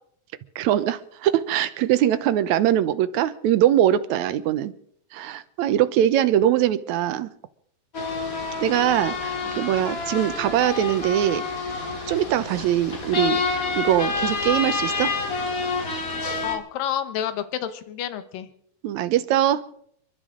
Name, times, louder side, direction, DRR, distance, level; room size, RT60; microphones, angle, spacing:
voice 1, 0.5-4.7 5.1-7.3 8.6-11.4 12.1-13.4 13.8-15.1 18.8-19.6, right 11 dB, 75° right, 12 dB, 1.8 m, -22 dB
sound 1, 7.9-16.6, left 4 dB, 30° left, 2.1 m, -28 dB
voice 2, 16.4-18.5, left 10 dB, 75° left, 11 dB, 2.8 m, -29 dB
30.0 x 11.5 x 3.8 m, 0.67 s
omnidirectional pair, 4.0 m